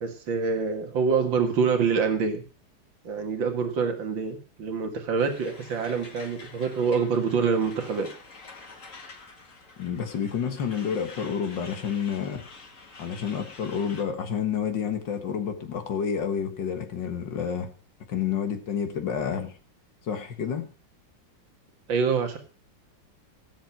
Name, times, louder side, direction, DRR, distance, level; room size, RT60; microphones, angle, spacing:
voice 1, 0.0-2.4 3.0-8.1 21.9-22.4, right 5 dB, 85° right, 5 dB, 2.6 m, -26 dB
Truck, 5.2-14.0, left 3 dB, 45° left, 2.2 m, -47 dB
voice 2, 9.8-12.5 13.0-17.7 18.1-19.5 20.0-20.7, left 7 dB, 75° left, 7 dB, 2.1 m, -29 dB
17.5 x 7.6 x 5.8 m, 0.36 s
omnidirectional pair, 2.0 m